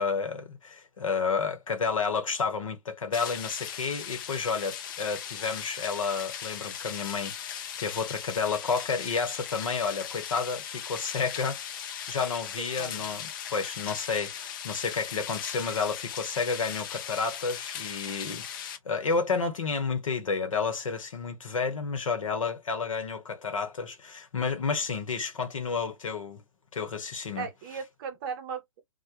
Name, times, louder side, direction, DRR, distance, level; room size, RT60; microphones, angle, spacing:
voice 1, 0.0-26.4 26.7-27.5, left 5 dB, 70° left, 0.9 m, -31 dB
sound 1, 3.1-18.8, left 9 dB, 40° left, 0.4 m, -38 dB
voice 2, 12.8-13.1 27.4-28.8, right 6 dB, 40° right, 0.7 m, -37 dB
2.2 x 2.1 x 2.7 m
figure-of-eight pair, 115°, 17 cm